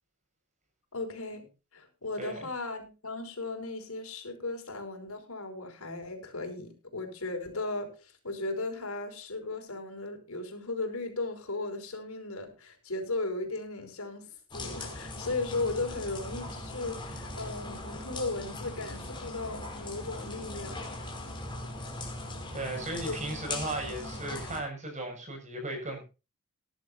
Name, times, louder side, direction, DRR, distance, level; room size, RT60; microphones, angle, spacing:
voice 1, 0.9-20.8 21.2-21.5 23.0-23.2, left 2 dB, 85° left, 4 dB, 5.3 m, -36 dB
sound 1, 14.5-24.6, left 2 dB, 25° left, 5.0 m, -39 dB
voice 2, 22.5-26.0, right 2 dB, 35° right, 3 dB, 6.7 m, -36 dB
19.0 x 12.0 x 2.8 m, 0.31 s
head